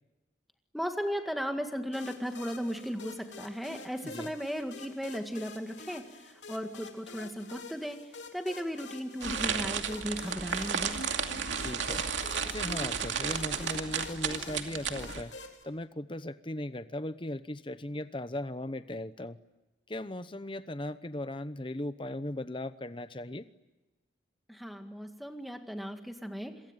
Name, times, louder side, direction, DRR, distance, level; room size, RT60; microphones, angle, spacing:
voice 1, 0.7-11.0 24.5-26.6, equal, ahead, 5 dB, 1.9 m, -36 dB
sound 1, 1.9-15.6, left 3 dB, 65° left, 3.5 m, -48 dB
sound 2, 9.2-15.2, right 6 dB, 70° right, 2.5 m, -33 dB
voice 2, 11.6-12.1 12.4-15.3 15.6-19.4 19.9-23.5, left 1 dB, 25° left, 12 dB, 0.9 m, -38 dB
27.0 x 23.0 x 9.1 m, 1.1 s
head